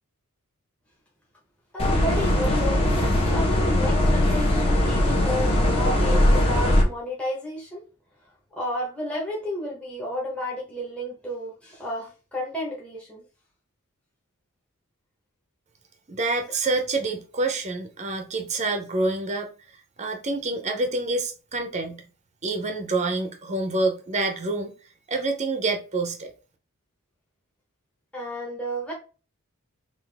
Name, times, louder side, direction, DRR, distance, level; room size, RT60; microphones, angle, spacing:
voice 1, 1.7-7.8 8.6-13.2 28.1-28.9, equal, 5° left, 1.1 m, -32 dB
sound 1, 1.8-6.8, left 1 dB, 25° left, 1.2 m, -20 dB
voice 2, 16.1-19.5 20.0-22.1 22.4-24.7 25.1-26.3, right 2 dB, 30° right, 0.7 m, -27 dB
5.7 x 2.6 x 3.4 m
head